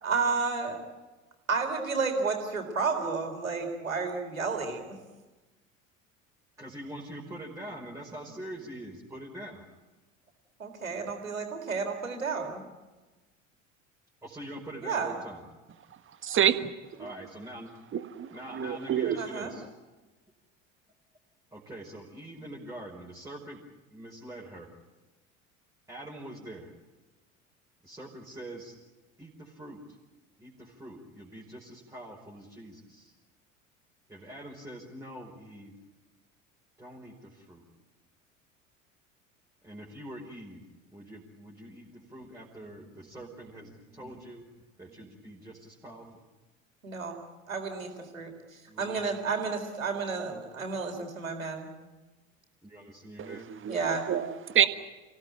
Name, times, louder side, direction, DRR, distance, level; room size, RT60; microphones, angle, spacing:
voice 1, 0.0-0.8 1.5-5.0 10.6-12.6 14.8-15.1 19.2-19.5 44.0-44.1 46.8-47.2 47.5-48.3 48.8-51.7 53.7-54.1, right 4 dB, 80° right, 4 dB, 4.2 m, -31 dB
voice 2, 6.6-9.6 14.2-15.4 17.0-17.7 18.3-19.7 21.5-23.6 23.9-24.7 25.9-26.7 27.8-28.7 29.2-29.8 30.4-33.1 34.1-35.7 36.8-37.6 39.6-40.6 40.9-44.4 44.8-46.2 48.7-49.0 52.6-53.5, right 1 dB, 10° right, -4 dB, 5.0 m, -44 dB
voice 3, 16.2-16.7 17.0-17.1 17.9-19.2 53.2-53.8 54.1-54.7, right 9 dB, 30° right, 11 dB, 1.5 m, -27 dB
28.5 x 17.5 x 9.2 m, 1.2 s
figure-of-eight pair, 70°, 40 cm